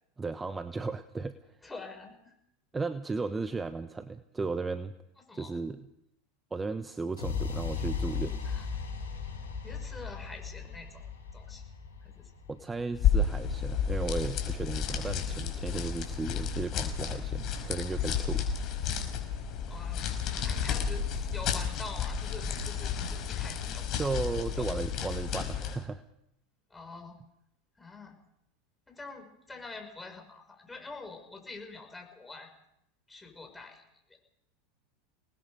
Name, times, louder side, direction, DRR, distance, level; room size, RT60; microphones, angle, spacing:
voice 1, 0.2-1.6 2.7-4.9 5.3-5.9 6.5-8.4 12.5-18.5 24.0-26.0, right 4 dB, 15° right, 11 dB, 1.0 m, -35 dB
voice 2, 1.6-2.3 5.3-5.6 8.4-8.7 9.6-11.0 11.3-11.6 12.0-12.3 19.7-20.1 20.4-21.1 21.3-23.9 24.6-24.7 26.7-27.2 27.8-28.2 28.9-32.5 33.1-33.8, left 3 dB, 10° left, 3 dB, 6.5 m, -45 dB
sound 1, 7.2-15.1, left 6 dB, 90° left, 5.9 m, -38 dB
sound 2, 12.9-25.8, left 7 dB, 45° left, 5.3 m, -31 dB
26.0 x 20.0 x 5.3 m, 0.79 s
hypercardioid pair, 95°, 0 cm